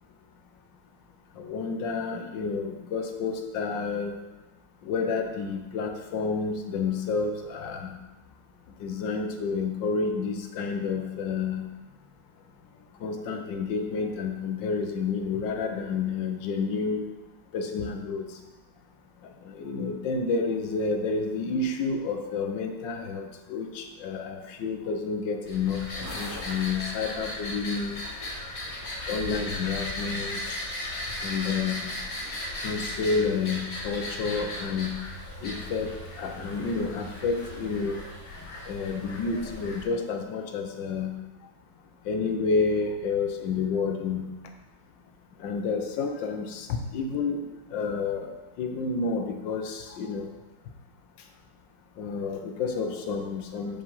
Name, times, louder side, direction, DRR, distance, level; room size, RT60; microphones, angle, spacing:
voice 1, 1.4-4.2 4.8-8.0 8.8-11.6 13.0-17.0 17.5-18.3 19.4-28.0 29.1-30.4 31.2-31.9 32.6-34.9 35.4-35.9 36.2-38.0 38.7-41.1 42.0-44.3 45.4-47.4 47.7-50.3 52.0-53.8, left 4 dB, 85° left, 5 dB, 1.6 m, -30 dB
sound 1, 25.5-39.8, left 1 dB, 70° left, 3.0 m, -36 dB
5.9 x 5.2 x 5.6 m, 1.1 s
omnidirectional pair, 1.9 m